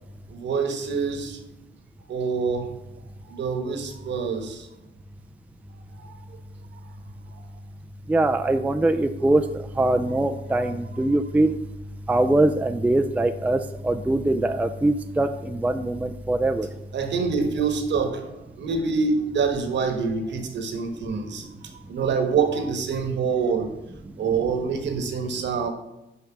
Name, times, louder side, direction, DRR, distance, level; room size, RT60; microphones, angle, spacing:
voice 1, 0.3-1.4 2.1-2.7 3.2-4.7 6.0-6.2 6.7-6.8 16.9-23.7 24.2-25.7, right 5 dB, 65° right, 6 dB, 1.3 m, -26 dB
voice 2, 8.1-11.6 12.1-16.7, right 2 dB, 5° right, 8 dB, 0.4 m, -22 dB
5.9 x 5.4 x 5.8 m, 0.90 s
cardioid pair, 90°, 20 cm